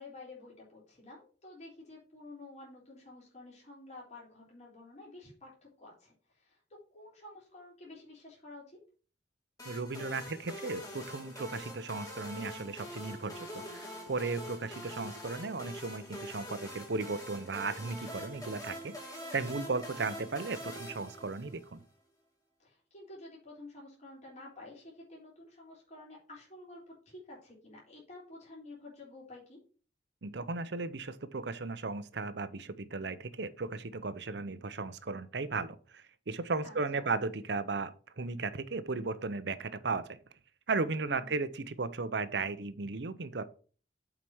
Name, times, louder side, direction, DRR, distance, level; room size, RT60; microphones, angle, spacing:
voice 1, 0.0-6.6 6.9-8.8 19.9-20.1 22.6-29.6 36.6-37.1 41.0-41.4, left 2 dB, 40° left, -5 dB, 3.9 m, -51 dB
sound 1, 9.6-21.8, equal, 20° left, 2.4 m, -45 dB
voice 2, 9.7-21.8 30.2-40.2 40.7-43.5, right 3 dB, 65° right, 14 dB, 0.7 m, -36 dB
7.6 x 4.9 x 5.5 m, 0.40 s
head